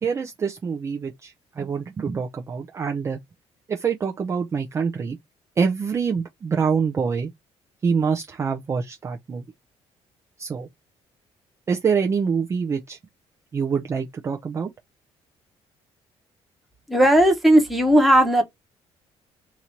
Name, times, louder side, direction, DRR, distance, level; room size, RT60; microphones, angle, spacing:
voice 1, 0.0-3.2 3.7-5.2 5.6-7.3 7.8-9.4 10.4-10.7 11.7-13.0 13.5-14.7, right 6 dB, 25° right, 0.5 m, -25 dB
voice 2, 16.9-18.4, right 1 dB, ahead, 1.0 m, -16 dB
2.9 x 2.6 x 4.3 m
cardioid pair, 150°, 11 cm